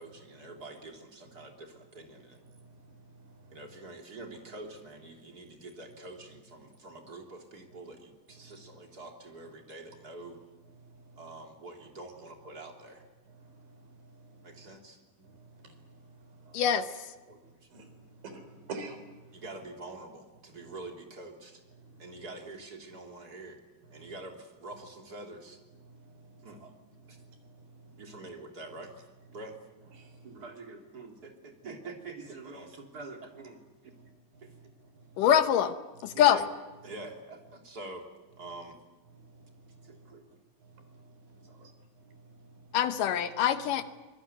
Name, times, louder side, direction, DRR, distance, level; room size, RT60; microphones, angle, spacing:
voice 1, 0.0-2.4 3.5-10.4 11.2-13.1 14.4-15.3 16.4-16.6 17.3-17.7 19.3-21.6 22.0-23.6 23.9-25.6 26.4-26.7 27.1-27.2 28.0-28.9 29.3-29.5 30.2-33.9 34.4-34.7 36.1-36.5 36.8-38.1 38.4-38.8 39.8-40.3 41.3-41.7, right 2 dB, 25° right, 2 dB, 3.5 m, -46 dB
voice 2, 2.5-3.6 10.9-11.2 13.3-14.7 15.3-16.0 16.2-16.5 17.7-17.9 18.2-19.0 24.0-24.1 25.8-26.5 27.0-27.3 27.6-28.0 30.0-30.3 35.0-35.1 39.2-40.1 40.7-41.7 42.0-42.6, right 3 dB, 75° right, 7 dB, 5.7 m, -49 dB
voice 3, 16.5-16.9 35.2-35.7 36.0-36.4 42.7-43.8, left 10 dB, 75° left, 10 dB, 2.5 m, -24 dB
24.5 x 22.5 x 9.4 m, 1.2 s
omnidirectional pair, 4.1 m